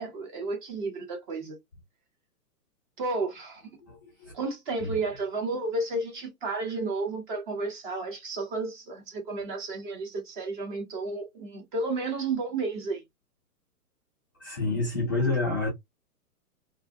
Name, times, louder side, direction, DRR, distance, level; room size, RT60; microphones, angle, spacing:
voice 1, 0.0-1.6 3.0-3.8 4.3-13.0, right 3 dB, 30° right, 0.9 m, -32 dB
voice 2, 14.4-15.7, left 3 dB, 15° left, 0.4 m, -27 dB
2.6 x 2.3 x 2.5 m
hypercardioid pair, 145°, 47 cm